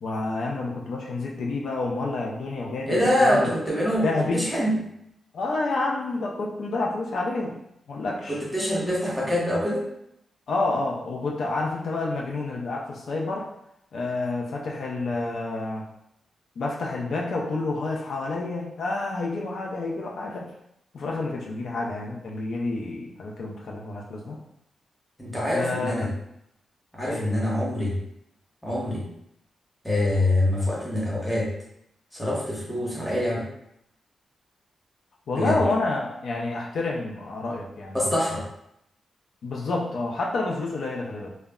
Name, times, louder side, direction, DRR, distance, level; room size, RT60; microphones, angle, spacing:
voice 1, 0.0-3.5 4.0-4.5 5.3-7.6 7.9-8.4 10.5-13.5 13.9-15.8 16.6-20.5 20.9-24.4 25.5-26.0 27.1-27.3 35.3-38.1 39.4-41.3, left 3 dB, 75° left, -2 dB, 0.4 m, -29 dB
voice 2, 2.9-4.8 8.3-9.8 25.2-26.1 26.9-28.0 28.6-29.0 29.8-31.5 32.1-33.5 35.4-35.6 37.9-38.4, left 1 dB, 5° left, -5 dB, 0.9 m, -25 dB
2.2 x 2.1 x 3.5 m, 0.78 s
cardioid pair, 100°, 0 cm